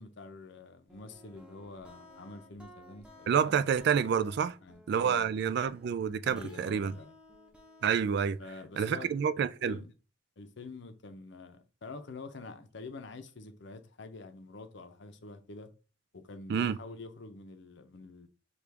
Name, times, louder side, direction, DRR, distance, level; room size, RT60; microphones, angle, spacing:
voice 1, 0.0-3.5 4.6-5.3 6.3-7.1 8.4-9.1 9.6-9.9 10.4-15.7 16.1-18.3, left 3 dB, 65° left, 0.6 m, -47 dB
sound 1, 0.9-8.5, left 1 dB, 5° right, 0.8 m, -56 dB
voice 2, 3.3-4.6 4.9-7.0 7.8-8.4 8.8-9.8 16.5-16.8, right 7 dB, 55° right, 0.3 m, -28 dB
6.0 x 2.4 x 3.4 m
head